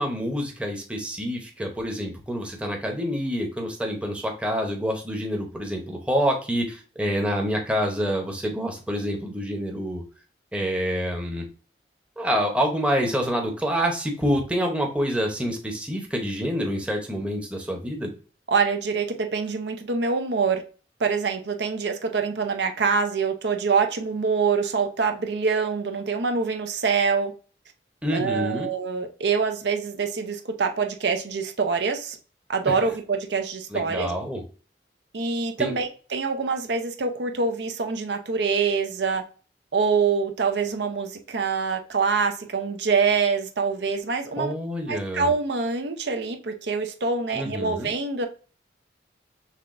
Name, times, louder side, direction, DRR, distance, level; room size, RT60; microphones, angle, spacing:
voice 1, 0.0-10.0 10.5-11.5 12.2-18.1 28.0-28.7 32.7-32.8 33.7-34.4 35.6-35.7 44.4-45.3 47.3-47.9, equal, 5° right, 0.8 m, -27 dB
voice 2, 18.5-20.6 21.0-27.3 28.1-32.2 32.5-34.1 35.1-39.2 39.7-44.5 44.9-48.3, right 5 dB, 70° right, 0.6 m, -25 dB
5.7 x 3.3 x 2.5 m
head